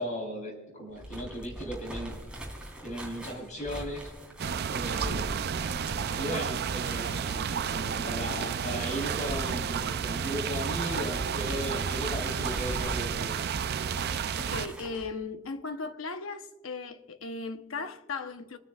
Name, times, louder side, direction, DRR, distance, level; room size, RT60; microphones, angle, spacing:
voice 1, 0.0-2.2 2.8-4.1 4.7-5.3 6.2-13.4, equal, 40° left, 3.5 m, -36 dB
sound 1, 0.9-15.1, right 1 dB, 5° right, 3.0 m, -42 dB
sound 2, 4.4-14.7, right 7 dB, 50° right, 0.4 m, -31 dB
voice 2, 14.4-18.6, left 4 dB, 80° left, 0.9 m, -37 dB
27.0 x 9.5 x 2.4 m
head